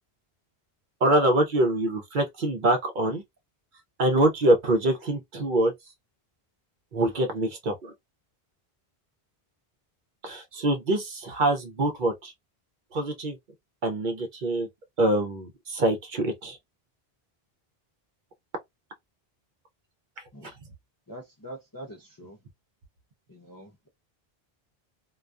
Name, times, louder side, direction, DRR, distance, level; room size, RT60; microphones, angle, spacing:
voice 1, 1.0-3.2 4.0-5.7 6.9-7.9 10.2-12.3 12.9-13.4 13.8-14.7 15.0-16.6 20.4-20.5, right 1 dB, 55° right, 0.7 m, -24 dB
voice 2, 21.1-22.4 23.3-23.9, right 1 dB, 30° left, 0.4 m, -44 dB
2.3 x 2.2 x 2.4 m
omnidirectional pair, 1.0 m